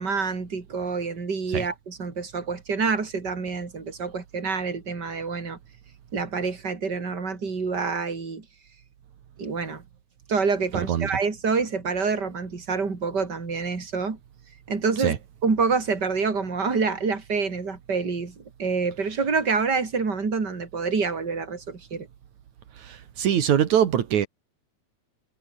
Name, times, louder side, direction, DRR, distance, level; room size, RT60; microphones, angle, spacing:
voice 1, 0.0-5.6 6.1-8.5 9.4-9.8 10.3-14.2 14.7-15.1 15.4-22.1, right 4 dB, 35° right, 4.2 m, -27 dB
voice 2, 10.7-11.1 15.0-15.2 22.8-24.3, right 9 dB, 75° right, 3.1 m, -23 dB
omnidirectional pair, 3.4 m